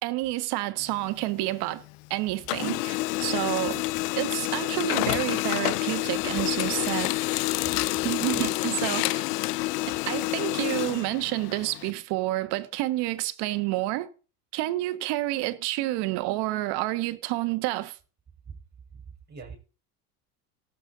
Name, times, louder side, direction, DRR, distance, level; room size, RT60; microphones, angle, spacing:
voice 1, 0.0-1.8 2.1-3.9 4.1-7.1 8.0-9.3 9.9-14.1 14.5-18.0, right 17 dB, 60° right, 1.3 m, -29 dB
Printer, 0.8-2.1 2.3-11.9, left 20 dB, 85° left, 0.6 m, -28 dB
voice 2, 18.9-19.6, right 5 dB, 20° right, 4.7 m, -43 dB
18.0 x 7.1 x 3.9 m
supercardioid pair, 120°, 46 cm